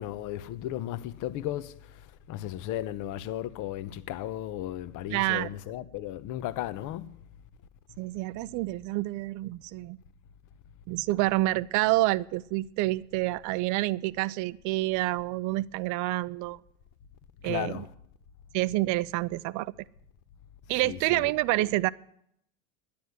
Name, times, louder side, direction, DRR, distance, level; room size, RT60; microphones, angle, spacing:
voice 1, 0.0-1.7 2.3-7.2 17.4-17.9 20.8-21.2, left 13 dB, 45° left, 1.0 m, -35 dB
voice 2, 5.1-5.5 8.0-10.0 10.9-16.6 17.4-17.8 18.5-19.7 20.7-21.9, right 18 dB, 45° right, 0.6 m, -28 dB
10.5 x 10.5 x 9.5 m
hypercardioid pair, 100°, 43 cm